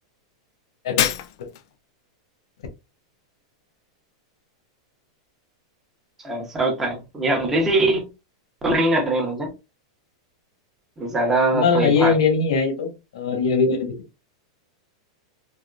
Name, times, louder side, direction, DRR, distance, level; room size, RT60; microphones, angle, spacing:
Shatter, 1.0-1.8, left 11 dB, 55° left, 0.4 m, -25 dB
voice 1, 6.2-8.1 8.6-9.5 11.0-12.1, right 2 dB, 10° right, 0.8 m, -22 dB
voice 2, 11.5-13.9, left 5 dB, 80° left, 1.0 m, -21 dB
3.5 x 2.3 x 2.3 m
supercardioid pair, 155°, 3 cm